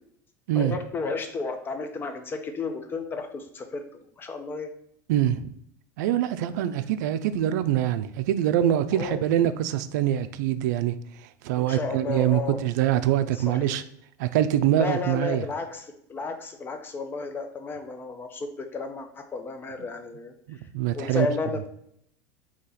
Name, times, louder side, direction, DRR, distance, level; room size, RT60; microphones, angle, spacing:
voice 1, 0.5-4.7 8.9-9.2 11.6-12.6 13.5-13.7 14.8-20.3 20.9-21.7, left 4 dB, 20° left, 7 dB, 0.6 m, -33 dB
voice 2, 5.1-5.5 6.0-11.0 11.4-13.8 14.2-15.5 20.5-21.3, right 11 dB, 75° right, 12 dB, 0.4 m, -24 dB
4.1 x 2.9 x 3.9 m, 0.70 s
supercardioid pair, 125°, 9 cm